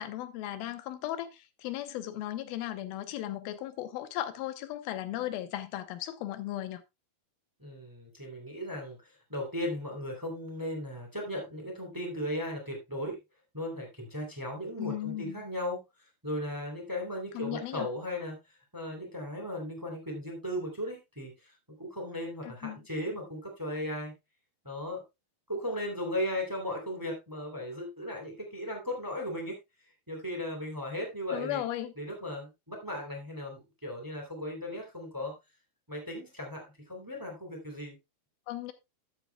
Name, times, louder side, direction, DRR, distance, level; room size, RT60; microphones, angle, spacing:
voice 1, 0.0-6.8 14.8-15.4 17.3-17.9 22.4-22.8 31.3-31.9 38.5-38.7, left 13 dB, 85° left, 2.7 m, -36 dB
voice 2, 7.6-9.0 9.3-13.2 13.5-15.8 16.2-18.4 18.7-21.5 21.8-24.1 24.6-25.0 25.5-29.6 30.1-31.6 32.0-35.3 35.9-38.0, left 1 dB, 5° right, 2.5 m, -36 dB
13.5 x 8.1 x 2.3 m
omnidirectional pair, 4.2 m